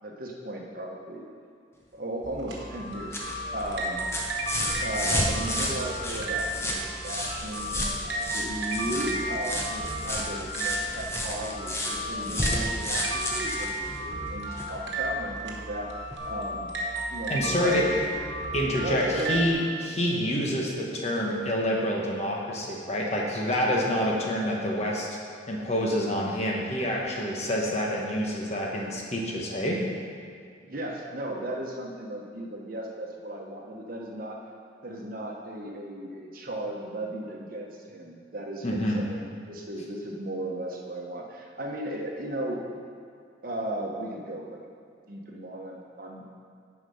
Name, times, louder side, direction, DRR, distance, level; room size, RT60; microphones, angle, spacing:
voice 1, 0.0-1.2 1.9-3.2 3.5-4.0 4.8-7.8 8.2-15.9 16.3-16.7 17.1-18.1 18.8-19.4 30.6-34.4 34.8-42.6 43.4-44.6 45.1-46.3, right 1 dB, 45° right, -1 dB, 1.1 m, -35 dB
sound 1, 2.2-19.5, right 1 dB, 65° right, 1.3 m, -34 dB
sound 2, 2.7-14.8 16.1-16.2, left 1 dB, 15° left, 0.8 m, -32 dB
voice 2, 17.3-18.1 18.5-25.2 25.5-29.8 38.6-39.0, equal, 35° left, -2 dB, 1.2 m, -27 dB
9.8 x 4.9 x 5.6 m, 2.3 s
head